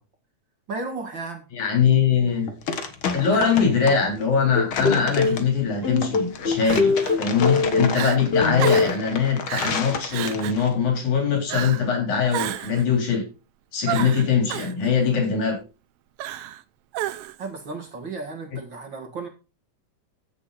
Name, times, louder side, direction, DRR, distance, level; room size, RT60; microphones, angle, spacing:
voice 1, 0.7-1.4 3.3-3.5 17.4-19.3, right 3 dB, 45° right, 2.1 m, -33 dB
voice 2, 1.5-2.5 3.1-13.2 13.7-15.6, left 6 dB, 80° left, 5.4 m, -22 dB
sound 1, 2.1-10.7, left 5 dB, 50° left, 2.1 m, -31 dB
sound 2, 4.6-5.4 5.8-8.0 8.3-8.9, left 4 dB, 30° left, 1.1 m, -22 dB
Crying sobbing, 5.1-5.4 6.6-7.2 7.6-7.7 7.9-8.2 8.6-9.0 9.5-9.8 10.1-10.6 11.5-11.9 12.3-12.8 13.9-14.7 16.2-16.6 16.9-17.5, right 13 dB, 75° right, 1.4 m, -31 dB
15.0 x 7.2 x 4.2 m
omnidirectional pair, 3.3 m